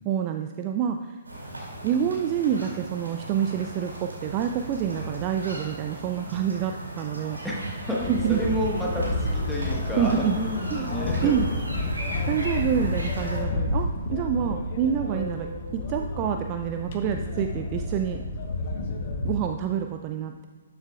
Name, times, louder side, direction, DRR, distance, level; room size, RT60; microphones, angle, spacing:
voice 1, 0.1-1.2 1.8-7.4 8.1-8.4 10.0-10.4 10.7-10.9 11.2-11.5 12.3-18.2 19.2-20.5, right 9 dB, 30° right, 6 dB, 0.3 m, -27 dB
sound 1, 1.2-13.4, right 1 dB, 75° right, 2.6 m, -37 dB
voice 2, 7.4-11.6, equal, ahead, -5 dB, 1.4 m, -30 dB
sound 2, 8.0-19.4, left 2 dB, 40° left, 1.0 m, -30 dB
12.0 x 7.6 x 2.3 m, 1.4 s
figure-of-eight pair, 125°, 0 cm